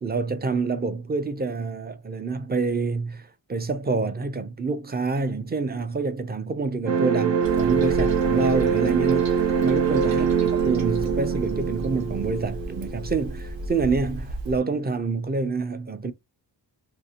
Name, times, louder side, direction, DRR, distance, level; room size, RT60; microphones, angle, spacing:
voice 1, 0.0-16.1, right 4 dB, 25° right, 0.4 m, -27 dB
sound 1, 6.9-13.9, right 7 dB, 70° right, 0.6 m, -24 dB
Toilet flush, 7.4-14.6, equal, 85° right, 1.0 m, -34 dB
3.2 x 2.6 x 2.8 m
wide cardioid pair, 140°, 44 cm